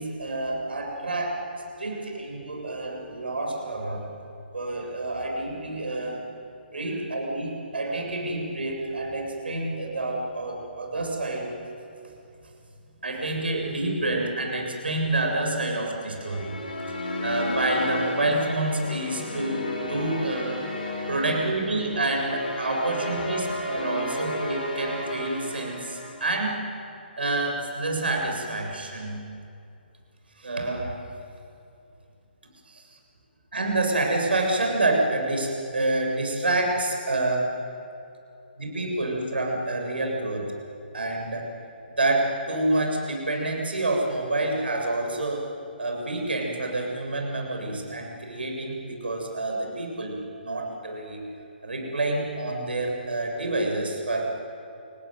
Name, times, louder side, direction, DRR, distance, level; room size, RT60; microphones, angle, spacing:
voice 1, 0.0-1.4 1.8-4.1 4.5-6.3 6.7-11.5 13.0-16.6 17.2-20.7 21.1-23.4 23.7-26.6 27.2-29.2 30.4-31.0 32.7-32.9 33.5-37.5 38.6-40.5 40.9-41.5 42.0-45.4 45.8-51.2 51.6-54.3, right 2 dB, 70° right, 1 dB, 7.7 m, -28 dB
sound 1, 16.1-26.5, left 1 dB, 55° left, 6.1 m, -33 dB
29.0 x 18.0 x 9.5 m, 2.6 s
figure-of-eight pair, 135°, 6 cm